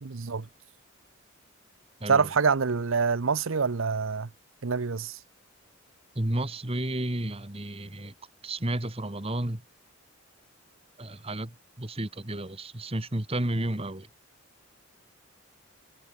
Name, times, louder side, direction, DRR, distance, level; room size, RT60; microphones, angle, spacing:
voice 1, 0.0-0.5 2.1-4.3 4.6-5.2, right 5 dB, 65° right, 0.7 m, -26 dB
voice 2, 6.1-8.1 8.4-9.6 11.0-14.1, right 1 dB, 25° right, 1.5 m, -32 dB
head